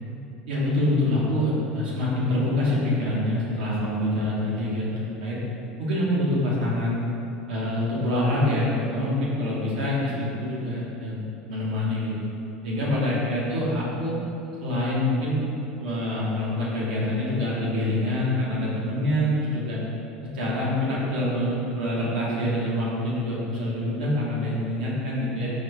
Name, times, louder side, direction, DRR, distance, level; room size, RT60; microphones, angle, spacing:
voice 1, 0.5-5.4 5.8-7.0 7.5-11.2 11.5-12.1 12.6-14.2 14.6-15.4 15.8-19.8 20.2-25.5, left 1 dB, 85° right, -6 dB, 1.0 m, -25 dB
4.1 x 2.5 x 3.2 m, 2.8 s
hypercardioid pair, 85°, 5 cm